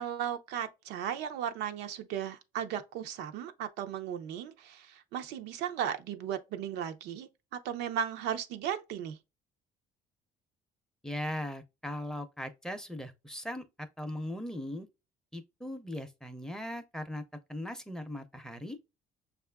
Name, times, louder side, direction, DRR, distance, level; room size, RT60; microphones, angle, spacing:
voice 1, 0.0-9.2, right 9 dB, 90° right, 0.6 m, -36 dB
voice 2, 11.0-14.9 15.3-17.2 17.5-18.8, left 1 dB, 5° left, 0.6 m, -39 dB
6.3 x 2.4 x 2.2 m
cardioid pair, 110°, 17 cm